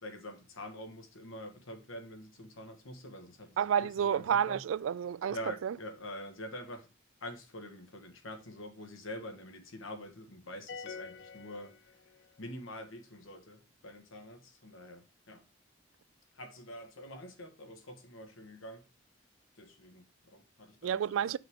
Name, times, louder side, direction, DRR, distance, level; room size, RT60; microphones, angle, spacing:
voice 1, 0.0-4.6 5.3-6.9 7.2-15.4 16.3-18.8 19.6-21.1, left 1 dB, 90° left, 1.6 m, -46 dB
voice 2, 3.6-5.4 5.6-5.7 20.8-21.4, right 8 dB, 85° right, 0.3 m, -30 dB
sound 1, 10.7-12.4, left 5 dB, 60° left, 0.4 m, -46 dB
8.0 x 5.7 x 3.6 m
head